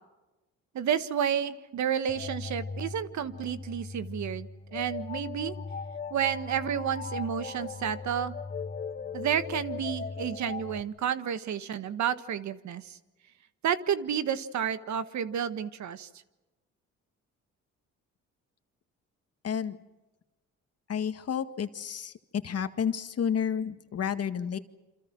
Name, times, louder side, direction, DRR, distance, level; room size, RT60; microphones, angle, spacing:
voice 1, 0.7-5.6 6.1-8.4 9.1-13.0 13.6-16.1, right 8 dB, 70° right, 12 dB, 1.6 m, -31 dB
sound 1, 2.1-10.8, left 5 dB, 30° left, 1.1 m, -38 dB
voice 2, 19.4-19.8 20.9-24.6, left 8 dB, 55° left, 9 dB, 1.9 m, -31 dB
28.0 x 27.0 x 6.3 m, 1.1 s
cardioid pair, 90°, 30 cm